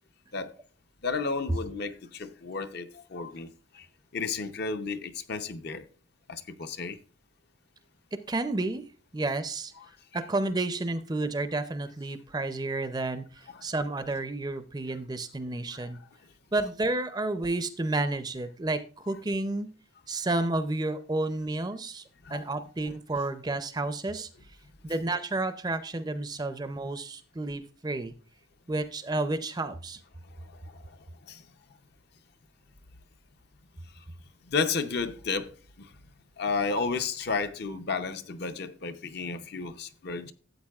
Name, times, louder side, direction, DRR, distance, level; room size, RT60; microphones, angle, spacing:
voice 1, 1.0-3.5 3.7-3.9 4.1-5.8 6.3-7.0 9.8-9.9 13.5-13.6 15.7-15.9 22.2-22.4 30.4-31.0 31.2-31.5 34.5-35.9 36.4-40.3, left 4 dB, 55° left, 0.6 m, -33 dB
voice 2, 8.1-9.7 10.1-16.0 16.5-19.7 20.1-22.0 22.3-24.3 24.8-28.1 28.7-30.0, right 2 dB, 20° right, 0.5 m, -31 dB
13.0 x 8.1 x 2.4 m
head